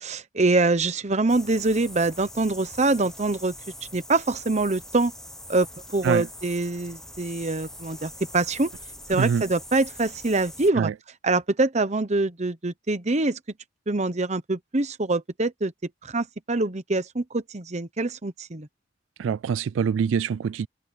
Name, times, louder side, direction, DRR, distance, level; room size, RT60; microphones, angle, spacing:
voice 1, 0.0-3.5 3.9-5.1 5.5-8.7 9.1-10.9 11.2-13.4 13.9-15.7 16.0-18.7, right 2 dB, 35° right, 1.0 m, -24 dB
sound 1, 1.3-10.7, left 1 dB, 5° left, 1.3 m, -43 dB
voice 2, 9.1-9.5 10.8-10.9 19.2-20.7, right 7 dB, 80° right, 0.3 m, -24 dB
head